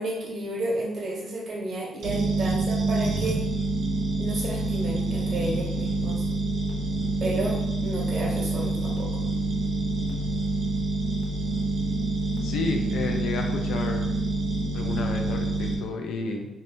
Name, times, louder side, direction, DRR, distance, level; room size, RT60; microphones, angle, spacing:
voice 1, 0.0-3.4 4.2-6.3 7.2-7.6 7.8-9.1, right 2 dB, 50° right, -3 dB, 1.1 m, -31 dB
sound 1, 2.0-15.7, right 2 dB, 70° right, 0.7 m, -27 dB
voice 2, 12.4-14.1 14.7-16.5, left 4 dB, 75° left, 3 dB, 0.5 m, -31 dB
2.7 x 2.7 x 3.4 m, 0.97 s
cardioid pair, 90°, 0 cm